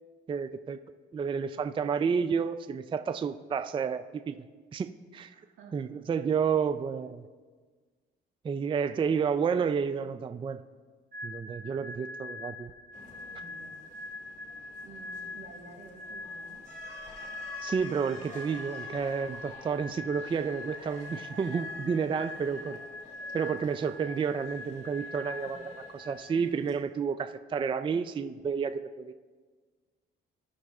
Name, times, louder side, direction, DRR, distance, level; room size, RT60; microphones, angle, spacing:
voice 1, 0.3-0.8 1.1-4.4 4.7-5.3 5.7-7.3 8.4-10.6 11.2-12.7 17.6-22.8 23.3-29.1, right 6 dB, 25° right, 10 dB, 0.3 m, -30 dB
voice 2, 5.3-5.8 13.3-13.8 14.8-16.7 22.3-22.6 25.4-25.7, right 3 dB, 85° right, 1 dB, 1.5 m, -52 dB
sound 1, 11.1-26.7, left 2 dB, 50° right, 1.5 m, -43 dB
sound 2, 12.9-26.8, left 2 dB, 35° left, 1.9 m, -51 dB
16.0 x 6.2 x 2.4 m, 1.5 s
cardioid pair, 90°, 20 cm